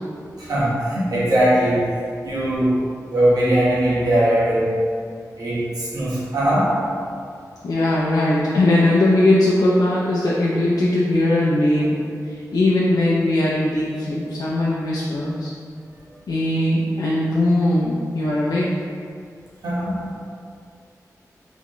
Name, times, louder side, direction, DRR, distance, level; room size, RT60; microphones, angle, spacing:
voice 1, 0.4-1.9 2.2-2.8 3.1-4.8 5.4-6.8 19.6-20.3, right 1 dB, 90° right, -8 dB, 1.2 m, -20 dB
voice 2, 7.6-11.9 12.2-15.5 16.3-18.7, left 1 dB, 85° left, -7 dB, 0.5 m, -19 dB
3.7 x 3.5 x 3.1 m, 2.3 s
wide cardioid pair, 85°, 6 cm